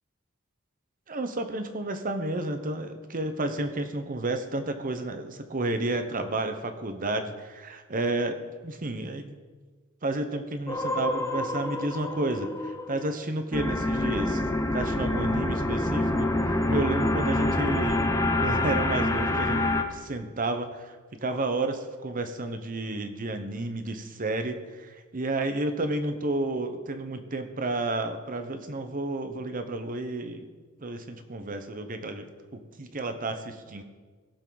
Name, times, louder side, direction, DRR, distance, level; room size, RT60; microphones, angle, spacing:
voice 1, 1.1-9.4 10.0-14.4 14.7-18.0 18.4-19.6 19.9-21.0 21.2-30.5 30.8-33.8, right 2 dB, 40° right, 8 dB, 1.0 m, -31 dB
sound 1, 10.7-13.2 13.5-19.8, left 2 dB, 15° left, 0.7 m, -27 dB
17.0 x 7.2 x 4.0 m, 1.4 s
head